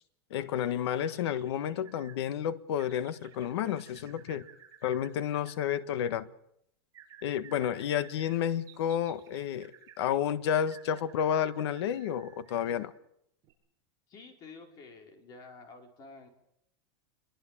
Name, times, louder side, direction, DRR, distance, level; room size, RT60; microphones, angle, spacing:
voice 1, 0.3-4.5 4.8-6.3 7.2-9.7 10.0-12.9, left 9 dB, 70° left, 1.6 m, -31 dB
sound 1, 1.1-2.2 2.8-5.8 6.9-10.0 10.7-13.0 13.4-13.5, right 9 dB, 25° right, 7.3 m, -56 dB
voice 2, 14.1-16.3, left 3 dB, 25° left, 5.0 m, -50 dB
27.5 x 23.5 x 7.6 m
supercardioid pair, 170°, 14 cm